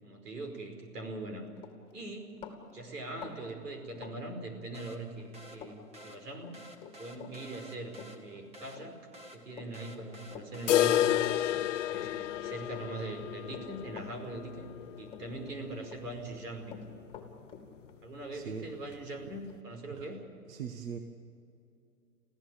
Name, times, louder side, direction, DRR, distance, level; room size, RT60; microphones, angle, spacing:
voice 1, 0.0-1.5 1.9-2.3 2.7-6.6 7.0-9.0 9.3-11.1 11.9-16.8 18.0-20.3, right 2 dB, 85° right, 5 dB, 5.2 m, -42 dB
Run, 1.2-1.3 1.6-4.9 5.2-5.8 6.0-12.4 12.7-14.8 15.1-16.0 16.3-19.6, left 7 dB, 10° left, 2.6 m, -50 dB
sound 1, 4.7-11.3, equal, 15° right, 1.5 m, -52 dB
sound 2, 10.7-16.5 16.8-16.9 17.2-17.3 17.8-17.9 18.8-18.9, left 12 dB, 55° left, 0.5 m, -31 dB
voice 2, 18.3-18.7 20.0-20.1 20.5-21.0, right 7 dB, 60° right, 6 dB, 1.6 m, -40 dB
24.5 x 15.5 x 8.8 m, 2.5 s
hypercardioid pair, 145°, 46 cm